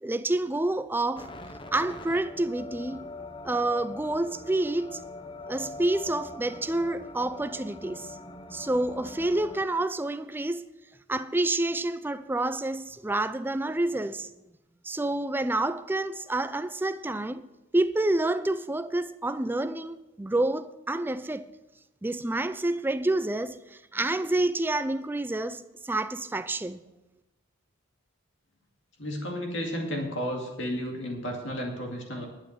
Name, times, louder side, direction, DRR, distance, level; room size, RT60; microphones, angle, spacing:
voice 1, 0.0-1.3 1.7-3.0 3.4-5.0 5.5-8.2 8.5-10.7 11.1-14.3 14.8-17.5 17.7-21.5 22.0-26.8, right 2 dB, 10° right, 0.3 m, -28 dB
sound 1, 1.2-9.7, left 2 dB, 25° left, 0.7 m, -43 dB
voice 2, 29.0-32.3, equal, 60° left, 2.3 m, -32 dB
11.5 x 8.5 x 6.4 m
head